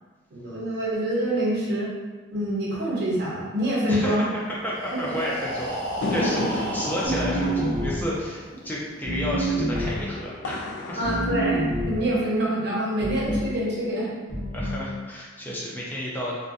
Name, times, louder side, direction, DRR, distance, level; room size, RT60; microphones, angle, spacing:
voice 1, 0.3-1.9 2.3-4.2 4.9-5.2 6.4-6.5 7.0-7.1 11.0-14.1, right 1 dB, 60° right, -5 dB, 0.7 m, -26 dB
voice 2, 3.9-4.2 4.6-5.8 6.1-10.6 10.9-11.1 14.5-16.3, equal, 10° left, -5 dB, 0.4 m, -31 dB
Breathing, 4.6-8.4, equal, 20° right, 0.8 m, -33 dB
sound 1, 6.0-12.5, left 2 dB, 90° left, 0.3 m, -35 dB
sound 2, 7.0-8.2 9.0-10.1 11.0-12.1 13.0-13.6 14.3-14.9, right 1 dB, 65° left, 0.9 m, -27 dB
2.5 x 2.2 x 2.5 m, 1.4 s
head